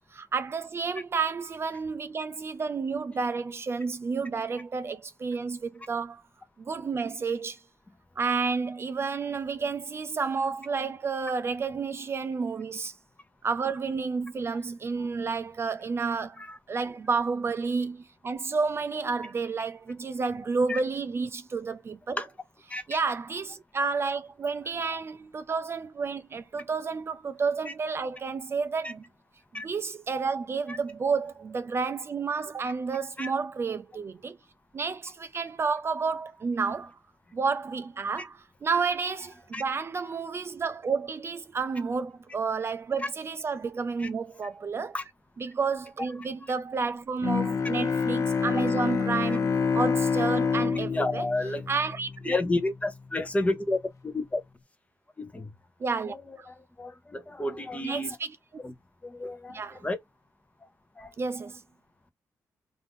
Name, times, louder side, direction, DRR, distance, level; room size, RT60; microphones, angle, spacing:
voice 1, 0.1-6.2 6.6-7.6 8.2-12.9 13.4-16.4 16.7-22.2 22.9-29.0 29.6-34.4 34.7-37.0 37.3-44.9 45.4-51.3 51.7-52.3 55.8-56.5 57.8-58.6 59.5-59.8 61.2-61.6, right 4 dB, 40° right, 0.3 m, -30 dB
Bowed string instrument, 47.2-52.5, left 5 dB, 55° left, 0.6 m, -27 dB
voice 2, 50.9-51.6 52.3-53.8 54.0-54.4 55.2-55.5 56.5-58.2 58.6-58.7 59.0-60.0 61.0-61.1, left 2 dB, 20° left, 0.8 m, -31 dB
2.6 x 2.5 x 3.5 m
cardioid pair, 80°, 7 cm